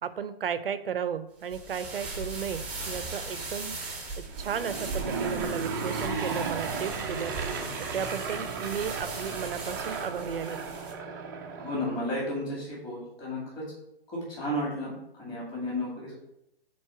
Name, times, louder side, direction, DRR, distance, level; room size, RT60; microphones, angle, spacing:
voice 1, 0.0-3.7 4.2-7.4 7.8-10.6, right 7 dB, 65° right, 12 dB, 0.6 m, -34 dB
sound 1, 1.4-10.9, right 3 dB, 5° right, 0.8 m, -39 dB
Aircraft / Engine, 4.2-12.2, right 4 dB, 20° right, 0.5 m, -35 dB
voice 2, 11.6-13.6 14.1-16.1, left 1 dB, 15° left, -6 dB, 2.4 m, -33 dB
4.7 x 4.3 x 5.6 m, 0.83 s
hypercardioid pair, 145°, 31 cm